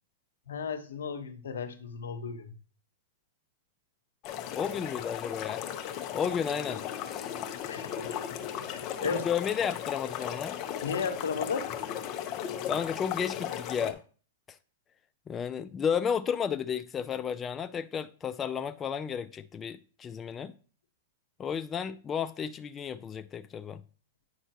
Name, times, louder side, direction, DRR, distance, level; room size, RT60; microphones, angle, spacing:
voice 1, 0.5-2.5 7.6-9.3 10.8-11.7, left 5 dB, 85° left, 1.1 m, -35 dB
sound 1, 4.2-13.9, left 10 dB, 40° left, 1.0 m, -36 dB
voice 2, 4.5-5.6 6.1-7.4 9.0-10.6 12.7-14.0 15.3-20.5 21.4-23.8, left 7 dB, 20° left, 0.4 m, -33 dB
9.4 x 5.5 x 3.0 m
hypercardioid pair, 130°, 0 cm